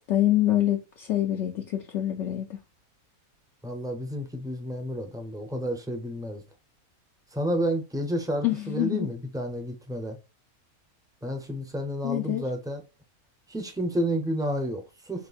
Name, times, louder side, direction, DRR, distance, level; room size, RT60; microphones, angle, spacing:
voice 1, 0.1-2.6 8.4-9.1 12.0-12.4, left 13 dB, 65° left, 0.8 m, -26 dB
voice 2, 3.6-6.4 7.3-10.2 11.2-12.8 13.5-15.3, equal, 5° right, 0.5 m, -30 dB
5.8 x 2.1 x 2.4 m
omnidirectional pair, 1.5 m